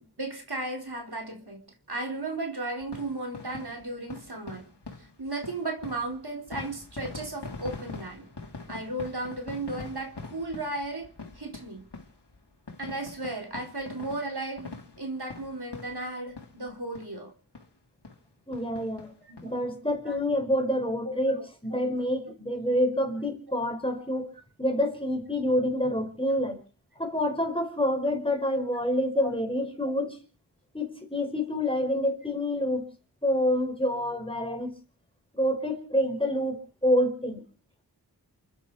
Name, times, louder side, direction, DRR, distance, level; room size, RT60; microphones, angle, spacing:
voice 1, 0.2-4.7 5.2-8.3 8.7-11.9 12.8-17.3 19.3-19.6 20.1-20.2 21.0-21.1 21.7-21.8 29.2-29.4 34.4-34.6, right 2 dB, 70° right, 1 dB, 4.3 m, -35 dB
sound 1, 2.8-16.7 17.0-17.1 17.5-17.7 18.0-18.2 18.5-19.5 19.9-20.0 20.2-20.3, left 3 dB, 80° left, 3.2 m, -43 dB
voice 2, 18.5-19.1 19.4-24.3 24.6-26.6 27.0-30.2 30.7-32.9 33.2-34.7 35.3-37.4, left 1 dB, 15° left, 3 dB, 5.0 m, -27 dB
29.5 x 10.0 x 4.8 m, 0.41 s
wide cardioid pair, 50°, 40 cm